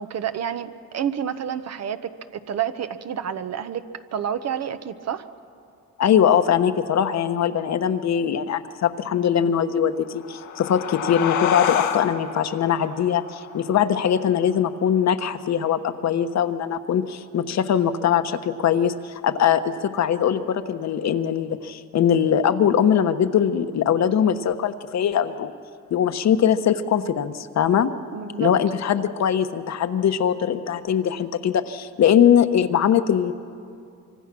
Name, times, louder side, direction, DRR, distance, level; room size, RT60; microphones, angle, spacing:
voice 1, 0.0-3.8 4.1-5.3 28.1-28.5, right 9 dB, 60° right, 9 dB, 1.0 m, -29 dB
voice 2, 6.0-25.5 25.9-27.9 28.4-33.3, left 8 dB, 60° left, 10 dB, 1.2 m, -21 dB
sound 1, 10.0-15.2, left 8 dB, 85° left, 1.3 m, -29 dB
25.0 x 24.5 x 6.1 m, 2.4 s
cardioid pair, 90°, 30 cm